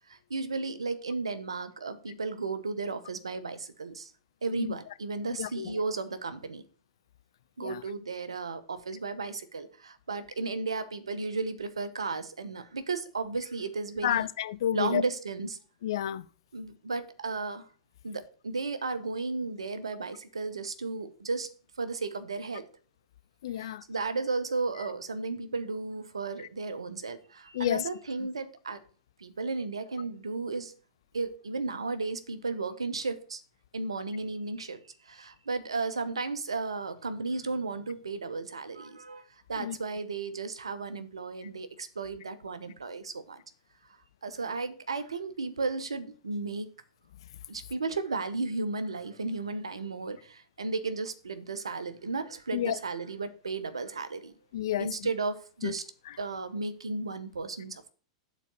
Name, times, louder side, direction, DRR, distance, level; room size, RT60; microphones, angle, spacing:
voice 1, 0.1-4.1 4.4-6.6 7.6-14.3 14.7-15.6 16.5-17.7 18.0-21.5 21.8-22.7 23.6-28.8 29.2-30.7 31.1-33.4 33.7-43.4 44.2-46.7 47.5-54.3 54.8-55.8 56.2-57.9, right 3 dB, 85° right, 0.8 m, -34 dB
voice 2, 5.4-5.8 7.6-7.8 14.0-15.0 15.8-16.3 23.4-23.8 27.5-27.9 39.6-39.8 52.5-52.8 54.5-55.1 55.6-55.7 56.1-56.2, left 11 dB, 65° left, 0.5 m, -30 dB
7.1 x 4.1 x 6.6 m
hypercardioid pair, 100°, 3 cm